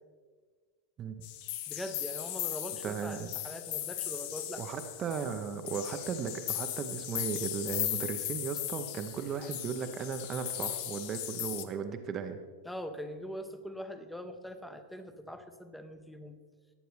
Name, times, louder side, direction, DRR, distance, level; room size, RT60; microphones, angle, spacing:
sound 1, 1.2-11.6, left 12 dB, 50° left, 0.8 m, -37 dB
voice 1, 1.7-4.6 12.7-16.4, equal, 5° left, 9 dB, 0.9 m, -42 dB
voice 2, 2.8-3.3 4.6-12.4, right 6 dB, 30° right, 6 dB, 0.8 m, -36 dB
18.5 x 9.1 x 3.3 m, 1.5 s
figure-of-eight pair, 90°, 0 cm